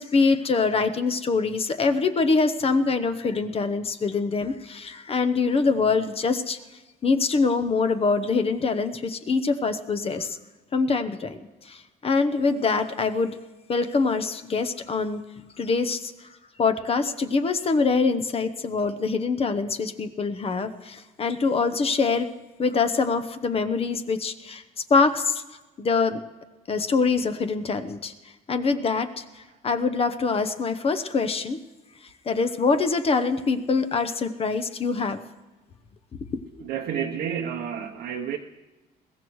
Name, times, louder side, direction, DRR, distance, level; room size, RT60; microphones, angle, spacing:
voice 1, 0.0-6.6 7.0-10.4 10.7-11.4 11.6-13.4 13.7-15.2 15.6-16.1 16.6-22.3 22.6-24.6 24.9-25.4 25.8-26.2 26.7-28.1 28.5-29.2 29.6-31.6 32.3-35.2 36.3-36.4, left 4 dB, 35° left, 10 dB, 0.9 m, -24 dB
voice 2, 36.6-38.4, right 8 dB, 75° right, 1 dB, 0.9 m, -30 dB
21.5 x 15.5 x 3.1 m, 1.1 s
cardioid pair, 110°, 17 cm